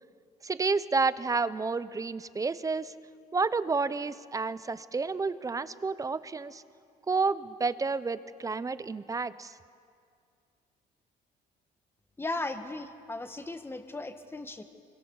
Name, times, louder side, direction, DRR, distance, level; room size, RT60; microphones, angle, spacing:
voice 1, 0.4-2.9 3.3-6.6 7.1-9.5, right 4 dB, 20° right, 15 dB, 0.8 m, -30 dB
voice 2, 12.2-14.6, left 2 dB, 15° left, 8 dB, 1.6 m, -36 dB
25.0 x 23.0 x 7.1 m, 2.3 s
cardioid pair, 110°, 17 cm